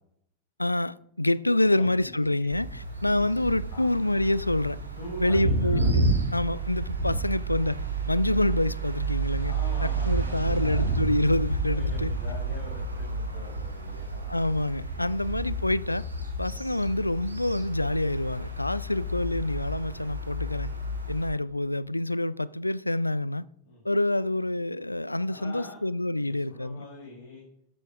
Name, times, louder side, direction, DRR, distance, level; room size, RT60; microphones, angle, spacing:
voice 1, 0.6-4.8 5.2-7.8 8.1-9.5 9.8-12.1 14.3-16.1 16.4-20.7 21.1-23.5 23.8-26.8, left 1 dB, 85° left, 0.3 m, -27 dB
voice 2, 1.5-2.3 2.8-3.0 3.7-3.8 5.0-5.9 9.4-10.9 11.7-14.4 14.9-15.2 16.4-16.6 23.6-23.8 25.3-25.8 26.2-27.4, left 2 dB, 50° left, 6.0 m, -44 dB
sound 1, 2.5-21.3, right 3 dB, 80° right, 2.2 m, -30 dB
15.5 x 13.5 x 2.5 m
figure-of-eight pair, 90°, 0 cm